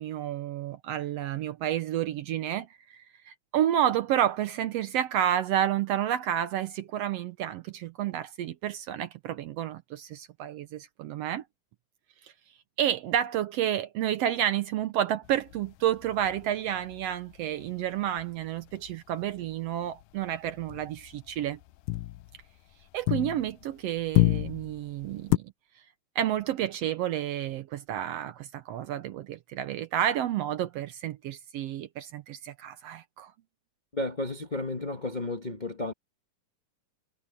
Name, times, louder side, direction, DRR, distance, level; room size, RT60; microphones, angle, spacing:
voice 1, 0.0-11.4 12.2-12.3 12.8-21.6 22.9-25.5 26.1-33.3, right 11 dB, 80° right, 1.5 m, -30 dB
sound 1, 15.2-18.9 19.2-19.6 19.8-23.7 24.0-25.4, left 20 dB, 80° left, 1.9 m, -30 dB
voice 2, 33.9-35.9, left 2 dB, 50° left, 0.5 m, -32 dB
omnidirectional pair, 3.7 m